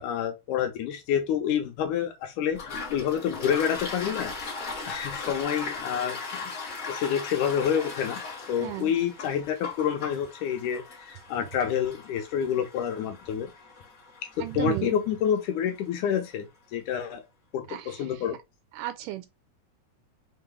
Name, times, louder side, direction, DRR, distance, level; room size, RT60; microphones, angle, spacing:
voice 1, 0.0-2.6 2.9-4.3 4.9-6.5 6.9-8.2 8.5-13.5 14.5-17.2 17.5-18.4, left 8 dB, 80° left, 2.1 m, -28 dB
Toilet flush, 2.5-15.9, left 4 dB, 50° left, 1.0 m, -38 dB
voice 2, 8.6-8.9 14.4-15.0 17.7-18.2 18.7-19.3, right 15 dB, 85° right, 2.2 m, -34 dB
5.4 x 3.8 x 2.2 m
omnidirectional pair, 3.8 m